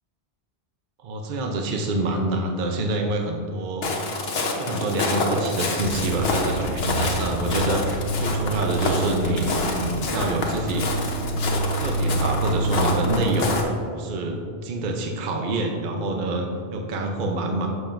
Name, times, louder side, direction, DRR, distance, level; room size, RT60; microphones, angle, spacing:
voice 1, 1.0-3.9 4.5-11.1 11.7-13.6 14.0-17.7, right 2 dB, 55° right, 2 dB, 0.8 m, -27 dB
Walk footsteps, 3.8-13.6, left 2 dB, 70° left, 1.1 m, -28 dB
sound 1, 5.8-13.4, right 2 dB, 75° right, 1.0 m, -28 dB
11.5 x 6.9 x 2.6 m, 2.4 s
omnidirectional pair, 1.1 m